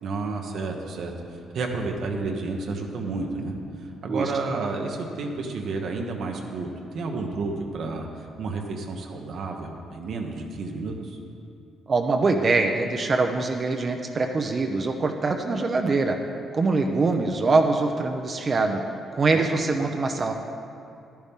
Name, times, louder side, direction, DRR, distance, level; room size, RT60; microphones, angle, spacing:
voice 1, 0.0-1.1 1.5-3.5 4.0-11.2 19.3-19.4, right 3 dB, 70° right, 2 dB, 1.1 m, -31 dB
voice 2, 11.9-16.2 16.5-18.8 19.1-20.3, right 3 dB, 40° right, 4 dB, 0.7 m, -23 dB
11.5 x 10.5 x 3.7 m, 2.5 s
cardioid pair, 90°, 0 cm